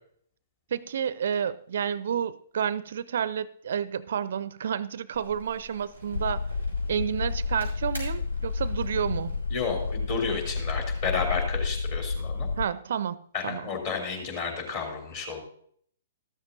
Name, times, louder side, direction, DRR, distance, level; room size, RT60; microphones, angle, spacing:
voice 1, 0.7-6.5 6.9-9.3 12.6-13.2 13.4-13.6, right 8 dB, 55° right, 0.4 m, -30 dB
sound 1, 5.1-11.1, equal, 90° left, 4.8 m, -48 dB
sound 2, 6.1-12.7, left 4 dB, 65° left, 0.3 m, -30 dB
voice 2, 9.5-12.5 13.3-15.4, left 5 dB, 40° left, 2.9 m, -31 dB
13.5 x 13.0 x 2.7 m
figure-of-eight pair, 120°, 0 cm